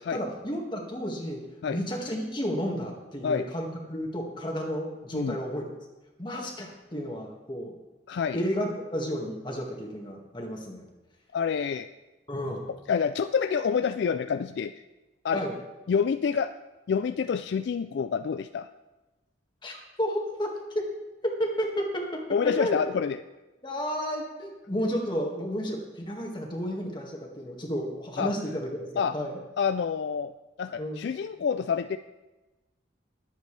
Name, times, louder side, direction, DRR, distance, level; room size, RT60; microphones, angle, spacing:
voice 1, 0.0-1.4 1.7-5.7 6.2-7.8 8.3-10.9 12.3-12.7 15.3-15.5 19.6-20.9 21.2-22.8 23.6-28.9 29.1-29.4 30.8-31.0, equal, 25° left, 0 dB, 1.8 m, -32 dB
voice 2, 8.1-8.4 11.3-11.9 12.7-14.7 15.2-15.4 15.9-16.5 16.9-18.7 22.3-23.2 28.2-28.3 29.0-29.2 29.6-30.3 30.6-32.0, left 6 dB, 60° left, 11 dB, 0.3 m, -27 dB
21.0 x 8.1 x 3.3 m, 1.1 s
head